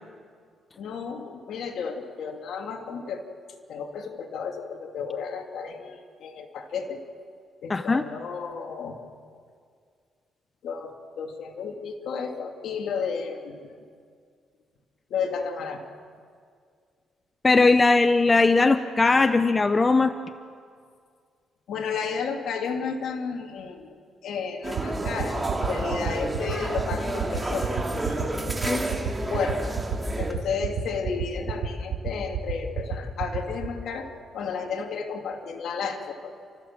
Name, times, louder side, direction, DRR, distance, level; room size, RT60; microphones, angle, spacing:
voice 1, 0.8-3.2 3.7-7.0 7.6-9.0 10.6-13.7 15.1-15.8 21.7-23.9 24.2-27.8 28.1-28.4 28.7-29.8 30.2-36.3, left 5 dB, 70° left, 3 dB, 2.6 m, -33 dB
voice 2, 7.7-8.0 17.4-20.1 28.6-28.8, left 3 dB, 25° left, 10 dB, 0.8 m, -19 dB
sound 1, 24.6-30.3, right 2 dB, 15° right, 2.7 m, -30 dB
sound 2, 24.8-33.7, right 9 dB, 80° right, 2.2 m, -29 dB
30.0 x 14.0 x 7.5 m, 2.1 s
cardioid pair, 90°, 0 cm